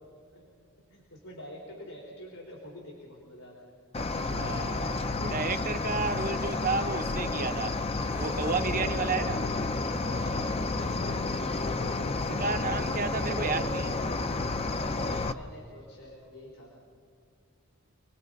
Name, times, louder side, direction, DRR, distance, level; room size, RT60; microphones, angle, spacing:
voice 1, 0.9-3.8 10.0-12.0 12.5-13.9 15.0-16.8, left 1 dB, 85° left, 4.3 m, -46 dB
Cricket, 3.9-15.3, left 3 dB, 25° left, 0.6 m, -31 dB
voice 2, 4.3-7.8 8.2-9.5 12.4-13.9, right 4 dB, 40° right, 0.8 m, -32 dB
sound 1, 8.1-9.6, right 1 dB, 5° right, 0.8 m, -48 dB
29.0 x 20.5 x 5.3 m
head